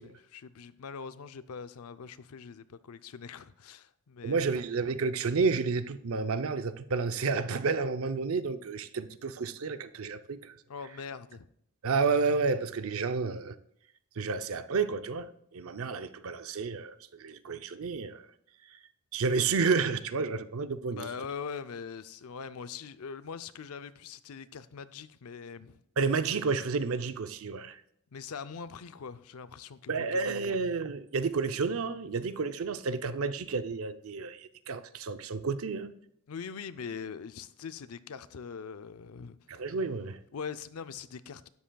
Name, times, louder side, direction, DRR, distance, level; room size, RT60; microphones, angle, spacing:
voice 1, 0.0-4.5 10.7-11.5 20.9-25.8 28.1-30.6 36.3-39.4 40.3-41.5, left 6 dB, 75° left, 0.5 m, -42 dB
voice 2, 4.2-10.6 11.8-13.6 14.2-18.3 18.7-18.8 19.1-21.1 26.0-27.8 29.9-35.9 39.5-40.2, right 4 dB, 65° right, 0.6 m, -31 dB
12.5 x 10.0 x 2.3 m
head